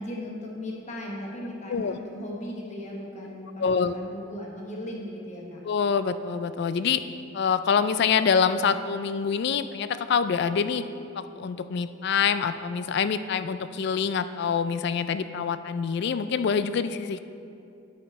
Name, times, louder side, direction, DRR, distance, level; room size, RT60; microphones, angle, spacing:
voice 1, 0.0-5.6, left 1 dB, 35° left, -2 dB, 1.1 m, -37 dB
voice 2, 3.6-3.9 5.6-7.0 7.3-10.8 11.1-17.2, left 6 dB, 55° left, 12 dB, 0.3 m, -25 dB
9.7 x 6.6 x 4.0 m, 2.6 s
head